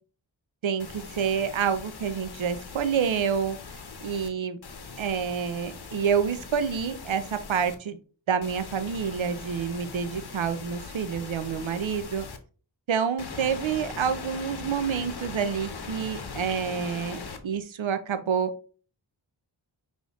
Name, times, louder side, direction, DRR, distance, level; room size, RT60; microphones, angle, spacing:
voice 1, 0.6-3.6 4.0-4.6 5.0-8.0 8.3-12.3 12.9-18.5, right 7 dB, 75° right, 11 dB, 0.7 m, -28 dB
sound 1, 0.8-4.3 4.6-7.8 8.4-12.4 13.2-17.4, left 4 dB, 55° left, 0.9 m, -40 dB
5.5 x 3.2 x 3.0 m, 0.38 s
cardioid pair, 45°, 47 cm